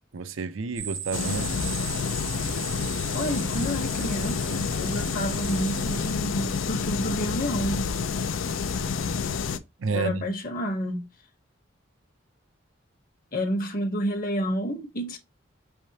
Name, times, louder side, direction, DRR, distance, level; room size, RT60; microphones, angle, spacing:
voice 1, 0.1-1.7 9.8-10.2, right 4 dB, 80° right, 0.6 m, -30 dB
sound 1, 0.7-6.1, right 8 dB, 60° right, 0.9 m, -38 dB
sound 2, 1.1-9.6, left 5 dB, 90° left, 0.5 m, -29 dB
voice 2, 3.1-7.9 9.9-11.0 13.3-15.2, equal, 45° left, 1.0 m, -29 dB
5.4 x 3.4 x 2.7 m
head